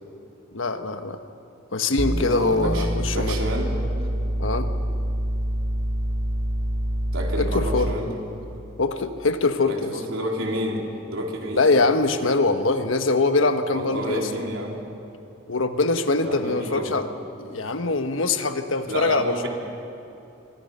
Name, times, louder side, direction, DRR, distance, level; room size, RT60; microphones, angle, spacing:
voice 1, 0.5-1.2 1.7-3.4 4.4-4.7 7.3-7.9 8.8-10.0 11.6-14.2 15.5-17.1 17.4-19.5, left 3 dB, 80° left, 8 dB, 1.3 m, -23 dB
sound 1, 2.0-8.1, right 1 dB, 20° right, 0.7 m, -26 dB
voice 2, 2.6-3.8 7.1-8.2 9.7-11.6 13.7-14.8 16.2-17.0 18.9-19.5, equal, 85° right, 0 dB, 3.8 m, -30 dB
26.5 x 23.5 x 5.6 m, 2.7 s
head